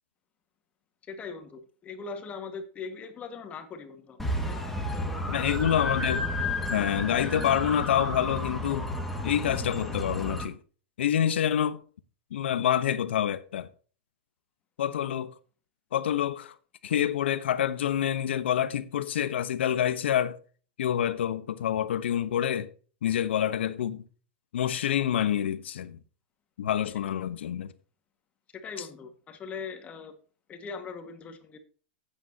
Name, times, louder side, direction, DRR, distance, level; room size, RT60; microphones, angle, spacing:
voice 1, 1.1-5.7 28.5-30.2 30.5-31.6, left 5 dB, 25° left, 1.9 m, -41 dB
sound 1, 4.2-10.4, left 1 dB, 5° left, 2.0 m, -32 dB
voice 2, 5.3-6.3 6.7-8.9 9.2-10.6 11.0-11.8 12.3-13.7 14.8-15.3 15.9-16.5 16.8-20.4 20.8-22.7 23.0-24.0 24.5-26.0 26.6-27.7, left 10 dB, 85° left, 1.1 m, -27 dB
14.0 x 8.9 x 2.9 m
supercardioid pair, 140°, 6 cm